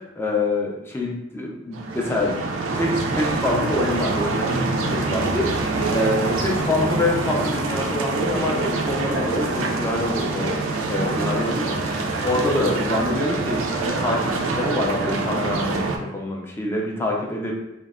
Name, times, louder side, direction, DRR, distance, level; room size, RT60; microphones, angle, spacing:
voice 1, 0.2-2.3 2.7-17.5, left 1 dB, 10° left, -2 dB, 0.3 m, -26 dB
sound 1, 1.7-16.0, right 3 dB, 80° right, 0.4 m, -25 dB
2.1 x 2.0 x 3.4 m, 0.91 s
head